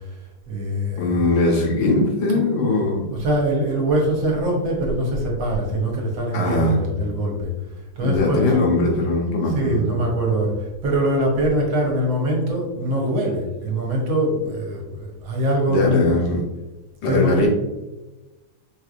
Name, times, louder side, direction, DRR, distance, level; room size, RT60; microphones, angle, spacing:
voice 1, 0.5-1.3 2.3-2.6 3.1-7.5 8.0-8.6 9.5-16.1 17.0-17.5, right 1 dB, 75° right, -1 dB, 1.7 m, -23 dB
voice 2, 1.0-3.0 6.3-6.8 8.0-9.8 15.7-16.4 17.0-17.5, left 2 dB, 70° left, -1 dB, 1.6 m, -20 dB
4.8 x 3.3 x 2.5 m, 1.1 s
omnidirectional pair, 2.2 m